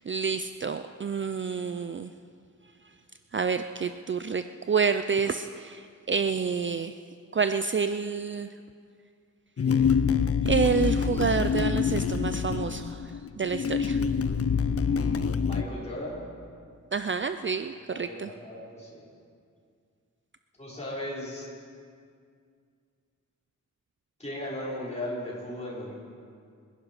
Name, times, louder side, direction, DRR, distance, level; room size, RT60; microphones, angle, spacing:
voice 1, 0.1-2.1 3.3-7.0 7.3-8.5 10.4-14.0 16.9-18.3, right 5 dB, 40° right, 10 dB, 0.5 m, -28 dB
sound 1, 9.6-15.6, left 6 dB, 50° left, 0.6 m, -26 dB
voice 2, 14.8-16.2 17.9-19.1 20.6-21.5 24.2-25.9, left 1 dB, 20° left, -7 dB, 5.3 m, -37 dB
25.5 x 11.0 x 5.0 m, 2.2 s
wide cardioid pair, 105°, 31 cm